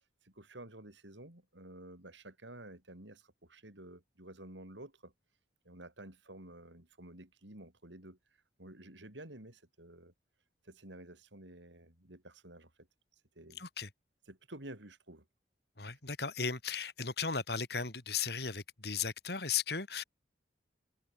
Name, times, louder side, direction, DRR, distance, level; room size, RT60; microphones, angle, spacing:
voice 1, 0.2-5.1 5.6-8.2 8.6-10.1 10.6-12.9 13.3-13.6 14.3-15.2 15.9-16.0, right 1 dB, 80° right, 4.9 m, -51 dB
voice 2, 13.6-13.9 15.8-20.0, left 6 dB, 60° left, 3.5 m, -36 dB
head